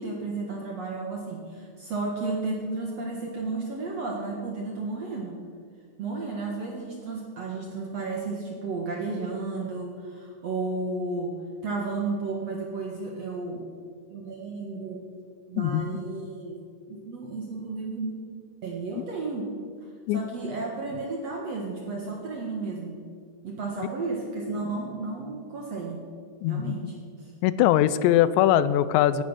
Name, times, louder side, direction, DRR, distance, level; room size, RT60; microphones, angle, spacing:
voice 1, 0.0-5.4 6.0-13.7 14.1-15.1 15.5-16.6 16.9-18.1 18.6-19.5 20.1-23.0 23.4-26.0 26.5-27.0, right 3 dB, 55° right, 0 dB, 1.9 m, -33 dB
voice 2, 26.4-26.9 27.4-29.2, left 12 dB, 90° left, 15 dB, 2.9 m, -21 dB
17.5 x 11.0 x 6.2 m, 2.1 s
omnidirectional pair, 5.0 m